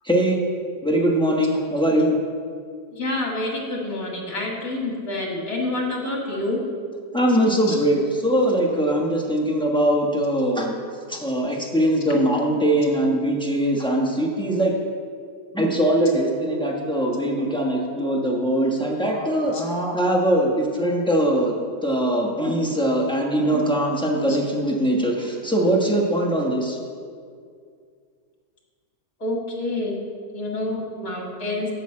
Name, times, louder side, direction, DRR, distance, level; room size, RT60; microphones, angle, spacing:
voice 1, 0.0-0.4 0.8-2.2 7.1-10.8 11.1-14.7 15.5-21.5 21.8-26.8, right 1 dB, 5° left, -1 dB, 0.9 m, -21 dB
voice 2, 2.9-6.6 7.7-7.8 19.5-19.6 24.3-24.4 29.2-30.0 30.3-31.7, left 2 dB, 50° left, -1 dB, 2.3 m, -28 dB
7.9 x 6.6 x 7.6 m, 2.2 s
omnidirectional pair, 1.9 m